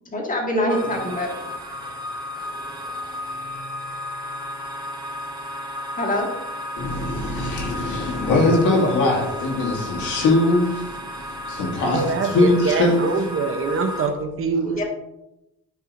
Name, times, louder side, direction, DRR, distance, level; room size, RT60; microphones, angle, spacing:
voice 1, 0.1-1.3 6.0-6.3 14.8-14.9, left 1 dB, 25° left, 0 dB, 1.9 m, -24 dB
sound 1, 0.7-14.1, left 1 dB, 15° right, 2.6 m, -33 dB
voice 2, 6.8-13.1, left 2 dB, 80° left, -2 dB, 2.2 m, -21 dB
voice 3, 11.9-14.8, right 4 dB, 45° right, 7 dB, 0.9 m, -24 dB
10.5 x 4.8 x 2.6 m, 0.89 s
cardioid pair, 90°, 30 cm